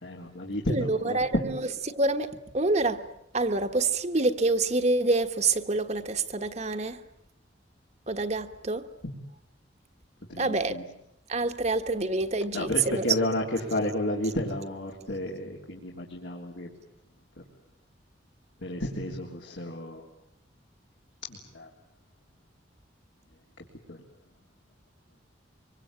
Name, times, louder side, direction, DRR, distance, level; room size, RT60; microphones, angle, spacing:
voice 1, 0.0-1.4 9.0-9.1 10.3-10.8 12.5-16.7 18.6-20.1 21.3-21.7 23.9-24.0, left 1 dB, 75° left, 3.6 m, -31 dB
voice 2, 0.7-1.7 1.9-3.1 3.3-7.0 8.1-8.9 10.4-10.8 11.3-13.1, right 2 dB, 35° right, 1.3 m, -27 dB
25.0 x 23.5 x 8.9 m
head